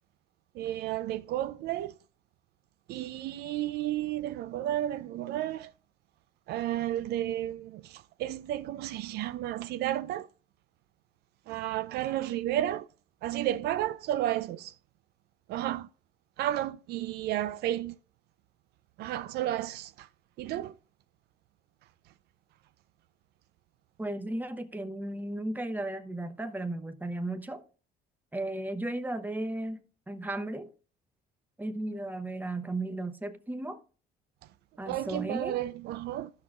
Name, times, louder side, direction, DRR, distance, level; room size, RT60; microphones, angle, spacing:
voice 1, 0.5-1.9 2.9-5.7 6.5-10.3 11.5-12.9 13.2-14.7 15.5-15.9 16.4-18.0 19.0-20.1 20.4-20.8 34.9-36.3, right 13 dB, 75° right, 0.4 m, -32 dB
voice 2, 24.0-27.6 28.3-30.7 31.6-33.8 34.8-35.6, right 1 dB, 10° right, 0.9 m, -35 dB
14.5 x 6.1 x 2.4 m
cardioid pair, 110°, 17 cm